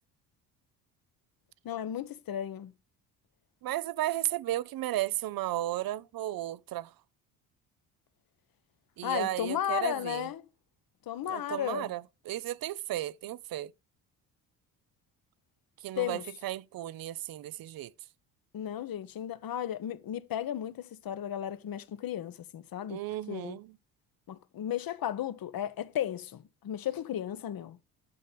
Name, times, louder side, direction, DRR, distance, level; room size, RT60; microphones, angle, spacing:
voice 1, 1.6-2.7 9.0-10.4 11.1-11.9 16.0-16.3 18.5-23.0 23.3-23.6 24.3-27.8, left 10 dB, 50° left, 1.2 m, -34 dB
voice 2, 3.6-6.9 9.0-10.3 11.3-13.7 15.8-17.9 22.9-23.7, right 14 dB, 50° right, 0.7 m, -34 dB
12.0 x 6.6 x 3.3 m
hypercardioid pair, 55°, 45 cm